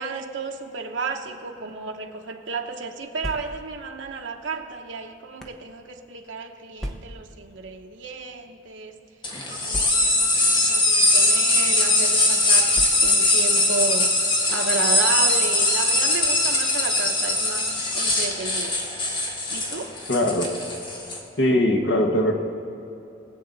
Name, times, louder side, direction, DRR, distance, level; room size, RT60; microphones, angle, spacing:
voice 1, 0.0-8.9 9.5-12.7 13.0-18.8 19.5-20.0, right 4 dB, 90° right, 3 dB, 0.9 m, -32 dB
sound 1, 3.0-3.9 4.7-5.7 6.8-7.4 8.3-8.4 8.7-8.8 9.7-10.4 11.2-11.5 12.7-13.4, equal, ahead, 0.8 m, -36 dB
sound 2, 9.2-21.2, left 2 dB, 25° left, 1.4 m, -21 dB
voice 2, 20.1-20.5 21.4-22.3, left 1 dB, 65° left, 2 dB, 1.4 m, -20 dB
21.0 x 8.0 x 4.0 m, 2.8 s
head